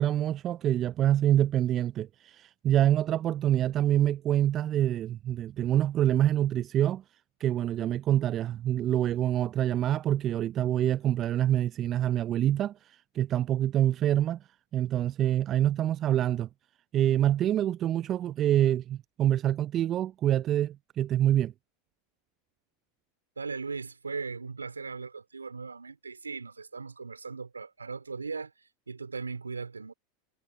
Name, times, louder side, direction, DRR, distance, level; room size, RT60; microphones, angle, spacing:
voice 1, 0.0-7.0 7.4-12.7 13.1-14.4 14.7-16.5 16.9-21.5, right 12 dB, 35° right, 0.6 m, -26 dB
voice 2, 23.4-29.9, right 4 dB, 90° right, 4.2 m, -38 dB
hypercardioid pair, 90°, 0 cm